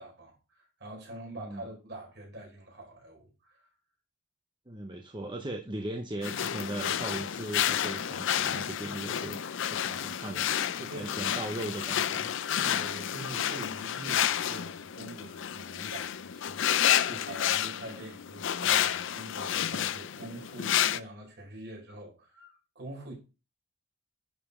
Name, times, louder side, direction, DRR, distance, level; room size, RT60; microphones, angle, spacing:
voice 1, 0.0-3.7 10.9-11.3 12.6-16.6 17.0-23.1, right 1 dB, 50° right, 4.8 m, -45 dB
voice 2, 4.7-9.4 9.7-10.5 10.8-12.3, right 1 dB, 20° right, 0.8 m, -38 dB
sound 1, 6.2-21.0, left 10 dB, 55° left, 0.5 m, -30 dB
11.0 x 5.2 x 5.0 m
head